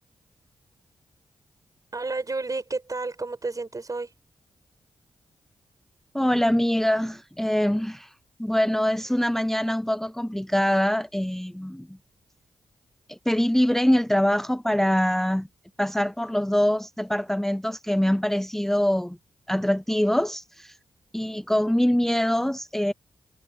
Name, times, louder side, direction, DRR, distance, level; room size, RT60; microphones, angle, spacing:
voice 1, 1.9-4.1, right 3 dB, 40° right, 7.6 m, -31 dB
voice 2, 6.1-8.1 8.4-12.0 13.1-15.5 15.8-19.2 19.5-20.8 21.1-22.9, equal, 5° left, 0.6 m, -24 dB
supercardioid pair, 45°, 10 cm